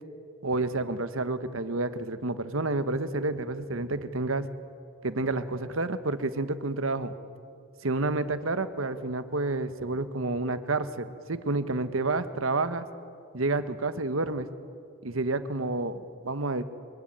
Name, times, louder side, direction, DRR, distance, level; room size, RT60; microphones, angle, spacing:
voice 1, 0.4-4.4 5.0-7.1 7.8-12.9 13.3-14.5 15.0-16.6, right 2 dB, 80° right, 11 dB, 1.3 m, -29 dB
24.5 x 22.5 x 9.2 m, 2.4 s
head